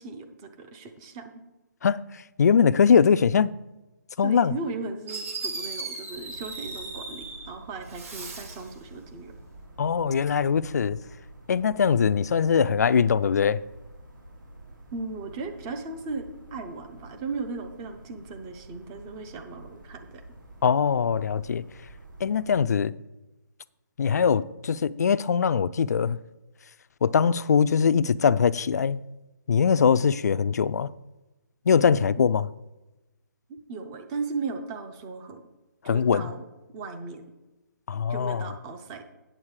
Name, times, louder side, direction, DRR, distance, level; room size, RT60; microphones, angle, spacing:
voice 1, 0.0-1.4 4.2-9.3 14.9-20.2 32.2-32.3 33.5-35.4 35.8-36.5 36.7-37.2 38.1-39.0, right 4 dB, 15° right, 0.5 m, -37 dB
voice 2, 2.4-3.5 4.2-4.5 9.8-11.0 11.5-13.6 20.6-21.6 22.2-22.9 24.0-26.2 27.0-29.0 29.5-30.9 31.7-32.5 35.9-36.2 37.9-38.4, left 6 dB, 55° left, 0.4 m, -22 dB
Fireworks, 4.7-4.8 5.1-7.5 7.9-8.7, right 3 dB, 45° right, 2.1 m, -37 dB
sound 1, 6.1-22.5, right 1 dB, 85° right, 2.9 m, -49 dB
8.8 x 7.3 x 4.8 m
hypercardioid pair, 165°, 10 cm